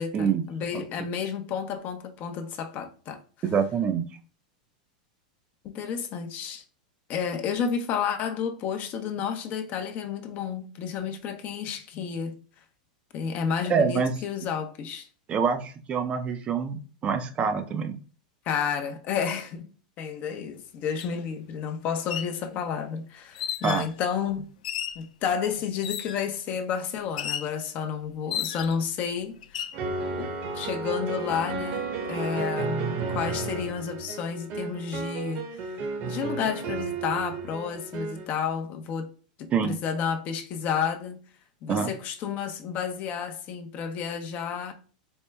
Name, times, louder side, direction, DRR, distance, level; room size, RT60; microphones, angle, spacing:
voice 1, 0.0-3.2 5.6-6.6 7.1-12.4 13.1-15.1 18.4-19.7 20.0-24.4 25.0-29.6 30.2-35.7 36.0-39.1 39.4-41.2 41.6-44.7, left 7 dB, 40° left, 0.6 m, -31 dB
voice 2, 3.4-4.0 13.7-14.1 15.3-17.9 23.6-23.9 39.5-39.8 41.7-41.9, right 6 dB, 30° right, 0.5 m, -26 dB
sound 1, 21.0-21.1 21.9-22.3 23.3-23.9 24.6-25.0 25.8-26.3 27.2-27.5 28.3-28.9 29.4-29.8, left 9 dB, 80° left, 0.4 m, -33 dB
sound 2, 29.7-38.3, right 4 dB, 45° right, 0.9 m, -32 dB
4.4 x 2.1 x 3.3 m
hypercardioid pair, 125°, 4 cm